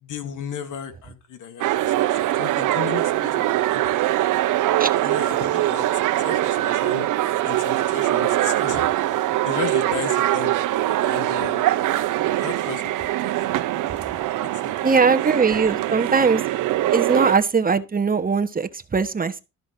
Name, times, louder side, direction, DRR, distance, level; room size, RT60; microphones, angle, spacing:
voice 1, 0.0-4.0 5.0-5.9 6.2-7.1 7.4-8.9 9.4-10.5 11.0-11.7 12.3-12.9 13.2-13.3 14.4-15.0 15.9-16.0, left 8 dB, 80° left, 2.4 m, -35 dB
sound 1, 1.6-17.3, right 14 dB, 85° right, 1.0 m, -22 dB
voice 2, 14.8-16.4 16.9-19.4, right 5 dB, 30° right, 1.2 m, -20 dB
13.0 x 5.1 x 6.0 m
cardioid pair, 90°, 30 cm